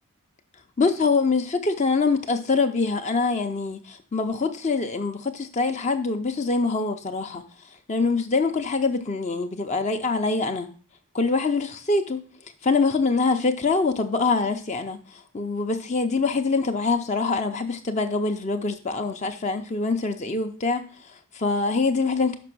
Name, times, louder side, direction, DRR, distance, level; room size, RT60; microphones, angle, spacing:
voice 1, 0.8-7.4 7.9-10.7 11.1-12.2 12.6-22.4, left 4 dB, 30° left, 6 dB, 0.5 m, -24 dB
6.0 x 5.3 x 6.0 m, 0.41 s
head